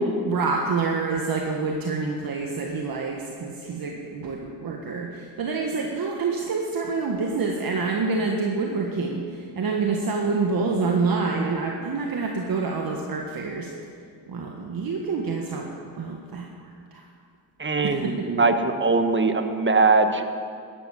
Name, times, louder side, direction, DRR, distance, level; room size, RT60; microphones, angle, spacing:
voice 1, 0.3-13.7 14.3-17.0 17.8-18.3, right 4 dB, 55° right, 1 dB, 1.6 m, -27 dB
voice 2, 17.6-20.2, right 3 dB, 25° right, 7 dB, 1.4 m, -21 dB
13.0 x 11.5 x 7.4 m, 2.3 s
cardioid pair, 70°, 43 cm